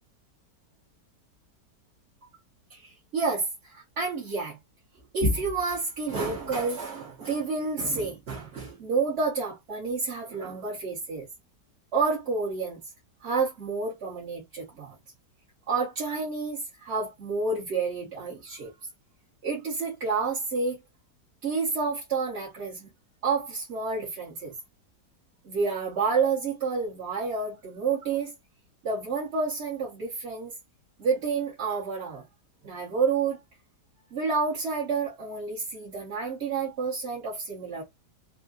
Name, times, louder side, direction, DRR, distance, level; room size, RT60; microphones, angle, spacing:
voice 1, 2.7-4.6 5.1-11.3 11.9-12.8 13.2-15.0 15.7-18.7 19.4-20.8 21.4-22.9 23.2-24.5 25.4-28.3 28.8-30.5 31.0-32.2 32.6-33.4 34.1-37.8, right 4 dB, 45° right, 1.2 m, -29 dB
3.8 x 2.1 x 2.5 m
omnidirectional pair, 1.8 m